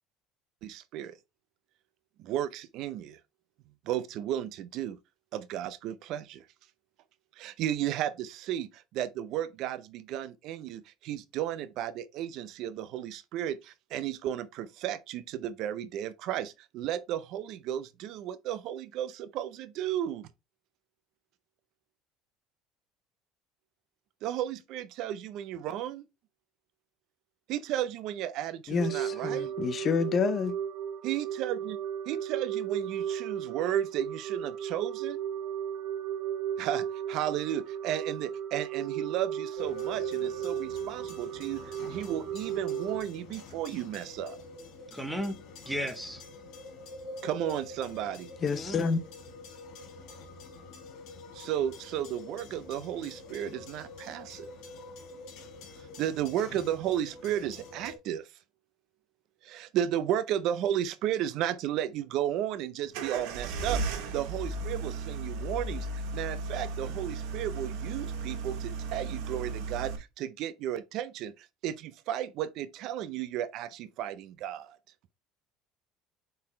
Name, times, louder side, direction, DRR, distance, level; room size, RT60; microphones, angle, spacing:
voice 1, 0.6-1.2 2.2-3.2 3.9-5.0 5.3-6.5 7.4-20.3 24.2-26.0 27.5-29.5 31.0-31.8 32.1-35.2 36.6-44.4 47.2-48.3 51.3-54.5 56.0-58.3 59.4-74.6, right 11 dB, 55° right, 0.6 m, -34 dB
voice 2, 28.7-30.6 48.4-49.0, left 5 dB, 30° left, 0.6 m, -28 dB
sound 1, 28.8-43.0, right 9 dB, 40° right, 1.9 m, -35 dB
Railway Line & Signal Lights, 39.6-58.0, left 3 dB, 65° left, 3.1 m, -46 dB
voice 3, 44.9-45.4 45.6-46.2 48.4-48.9, equal, 5° right, 1.2 m, -35 dB
sound 2, 62.9-70.0, right 3 dB, 80° right, 1.8 m, -35 dB
8.5 x 4.0 x 3.2 m
cardioid pair, 155°, 0 cm